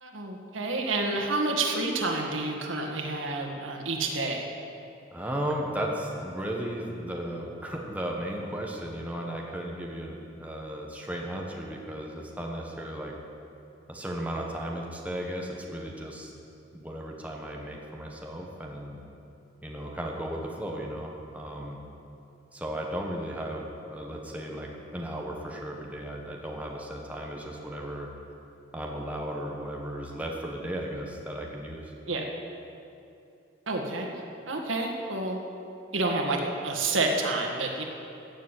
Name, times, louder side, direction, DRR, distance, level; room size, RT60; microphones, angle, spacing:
voice 1, 0.0-4.4 32.1-32.3 33.7-34.1 34.5-35.4 35.9-37.8, right 2 dB, 85° right, 2 dB, 1.9 m, -29 dB
voice 2, 5.1-13.1 13.9-16.3 16.7-19.0 19.6-21.8 22.5-28.1 28.7-31.9, right 1 dB, 5° right, -1 dB, 1.4 m, -35 dB
15.5 x 7.2 x 9.1 m, 2.7 s
head